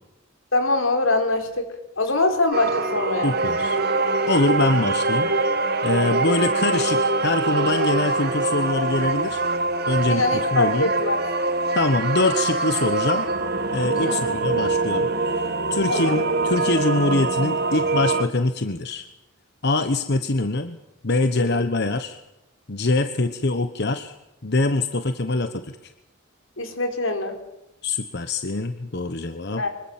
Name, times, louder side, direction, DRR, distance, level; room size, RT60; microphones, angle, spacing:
voice 1, 0.5-1.7 2.0-3.3 10.1-11.2 14.1-14.3 15.9-16.2 21.4-21.6 26.6-27.4 29.6-29.7, left 2 dB, 85° left, 5 dB, 4.5 m, -23 dB
sound 1, 2.5-18.2, right 3 dB, 55° right, 2.0 m, -24 dB
voice 2, 3.2-3.8 4.3-5.3 5.8-9.4 9.9-10.9 11.7-13.3 13.7-15.1 15.7-19.1 19.6-20.8 21.0-22.2 22.7-24.1 24.4-25.9 27.8-29.6, left 2 dB, 55° left, 9 dB, 1.1 m, -24 dB
25.0 x 22.0 x 7.4 m, 0.91 s
head